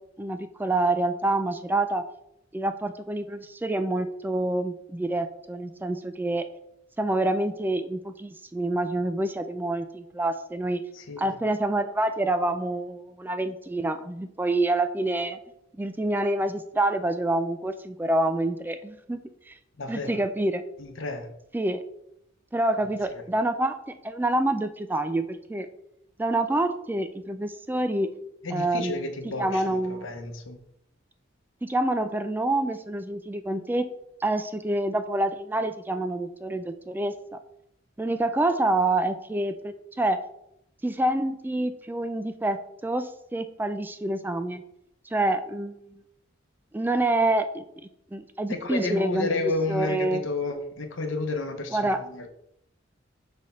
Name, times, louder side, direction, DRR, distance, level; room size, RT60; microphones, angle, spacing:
voice 1, 0.2-2.0 2.5-6.5 7.0-10.8 11.2-15.4 15.8-19.2 19.5-19.6 19.9-20.6 21.5-21.8 22.5-25.7 26.2-28.1 28.5-30.1 31.6-33.9 34.2-37.4 38.0-40.2 40.8-44.6 45.1-45.7 46.7-47.6 48.1-50.2 51.7-52.0, right 2 dB, 10° right, 10 dB, 0.3 m, -27 dB
voice 2, 10.9-11.3 19.8-20.3 20.8-21.3 23.1-23.2 28.4-30.6 48.5-52.3, left 3 dB, 75° left, 7 dB, 0.9 m, -31 dB
6.3 x 3.4 x 5.5 m, 0.77 s
head